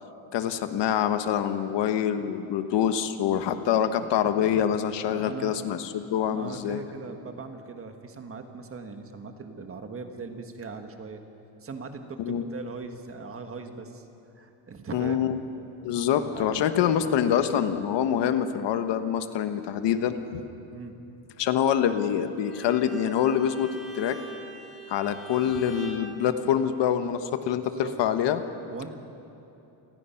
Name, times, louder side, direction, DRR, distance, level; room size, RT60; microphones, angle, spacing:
voice 1, 0.3-6.8 12.2-12.4 14.9-15.4 15.8-20.4 21.4-24.2 24.9-28.4, left 9 dB, 65° left, 9 dB, 1.3 m, -25 dB
voice 2, 5.1-5.6 6.3-11.2 11.6-14.1 14.3-15.3 16.3-17.1 20.7-21.0 27.5-27.9 28.7-28.9, right 4 dB, 30° right, 6 dB, 1.5 m, -40 dB
Bowed string instrument, 22.4-26.1, right 6 dB, ahead, 4.7 m, -41 dB
29.0 x 19.5 x 5.8 m, 2.9 s
cardioid pair, 170°, 46 cm